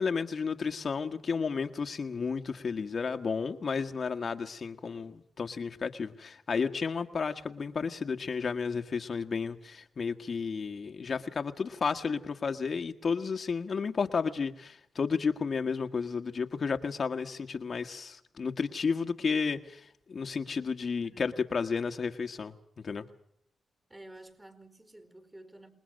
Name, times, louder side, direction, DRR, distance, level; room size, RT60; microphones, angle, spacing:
voice 1, 0.0-22.5 22.8-23.1, left 5 dB, 50° left, 1.6 m, -32 dB
voice 2, 21.0-21.4 23.9-25.7, right 1 dB, 20° right, 4.4 m, -51 dB
28.0 x 20.5 x 6.5 m
cardioid pair, 75°, 0 cm